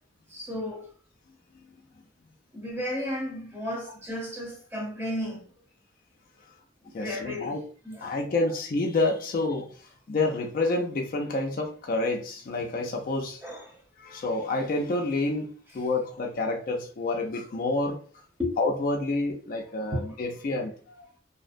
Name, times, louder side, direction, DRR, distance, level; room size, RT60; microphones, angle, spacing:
voice 1, 0.3-0.9 2.5-5.4 6.8-7.6 7.8-8.1 13.4-13.8 18.4-18.6 19.9-20.1, left 1 dB, 10° right, 0.8 m, -33 dB
voice 2, 6.9-7.6 8.0-9.7 10.1-13.4 14.0-18.0 18.6-20.7 21.0-21.1, left 2 dB, 45° left, 0.3 m, -28 dB
2.5 x 2.1 x 2.5 m
head